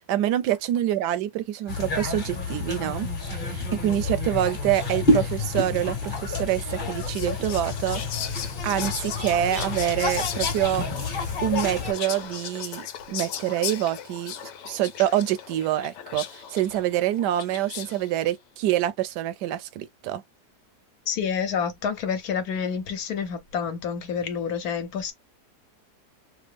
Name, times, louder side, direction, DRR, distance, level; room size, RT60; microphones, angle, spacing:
voice 1, 0.1-8.0 8.6-10.8 11.4-14.3 14.6-20.2, right 12 dB, 80° right, 1.2 m, -26 dB
sound 1, 1.7-11.9, left 2 dB, 30° left, 1.2 m, -29 dB
Whispering, 6.7-18.1, left 9 dB, 85° left, 1.3 m, -37 dB
voice 2, 21.1-25.1, left 7 dB, 65° left, 1.2 m, -28 dB
3.5 x 2.0 x 3.3 m
omnidirectional pair, 1.9 m